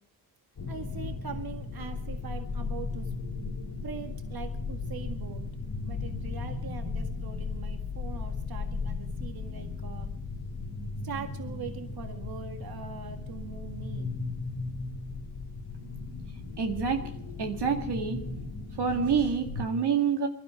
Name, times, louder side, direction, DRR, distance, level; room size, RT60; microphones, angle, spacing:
sound 1, 0.6-19.6, left 4 dB, 80° left, 2.6 m, -36 dB
voice 1, 0.7-3.1 3.8-5.5 5.8-10.1 11.0-14.1, right 6 dB, 65° right, 6 dB, 1.8 m, -42 dB
voice 2, 16.6-17.0 17.4-18.2 18.8-20.3, right 6 dB, 85° right, 4 dB, 2.1 m, -27 dB
22.5 x 12.0 x 4.8 m, 0.70 s
cardioid pair, 65°, 39 cm